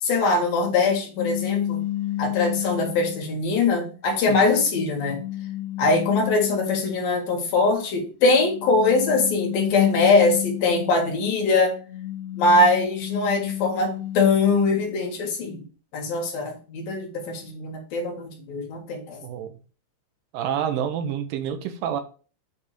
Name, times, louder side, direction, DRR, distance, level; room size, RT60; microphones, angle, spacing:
voice 1, 0.0-1.8 2.2-5.2 5.8-11.8 12.4-15.6 15.9-19.2, left 3 dB, 60° left, 1 dB, 3.1 m, -22 dB
sound 1, 1.2-3.3 4.0-7.1 8.2-11.2 11.7-14.6, left 14 dB, 85° left, 3.0 m, -32 dB
voice 2, 19.2-19.6 20.3-22.0, right 9 dB, 75° right, 7 dB, 2.2 m, -28 dB
8.3 x 3.6 x 6.6 m, 0.37 s
omnidirectional pair, 5.0 m